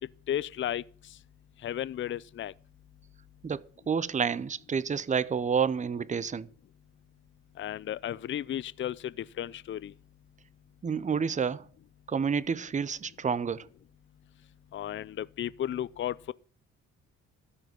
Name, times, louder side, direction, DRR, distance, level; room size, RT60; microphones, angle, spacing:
voice 1, 0.3-0.8 1.6-2.5 7.6-9.9 14.7-16.3, left 11 dB, 40° left, 0.5 m, -34 dB
voice 2, 3.4-6.5 10.8-11.7 12.1-13.7, right 6 dB, 25° right, 0.6 m, -29 dB
13.5 x 5.0 x 8.0 m
cardioid pair, 90°, 30 cm